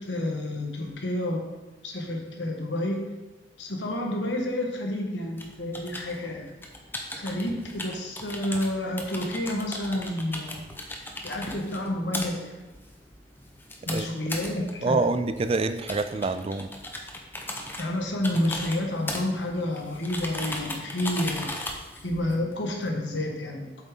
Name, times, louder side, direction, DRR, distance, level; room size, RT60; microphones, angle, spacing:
voice 1, 0.0-1.4 1.8-3.0 3.6-6.5 7.1-10.6 11.2-12.5 13.9-15.1 17.8-21.5 22.0-23.8, left 1 dB, 70° left, 1 dB, 1.5 m, -29 dB
sound 1, 5.4-22.9, left 1 dB, 10° left, 0.9 m, -38 dB
voice 2, 14.8-16.7, right 3 dB, 30° right, 11 dB, 0.4 m, -26 dB
8.1 x 7.2 x 3.8 m, 1.2 s
head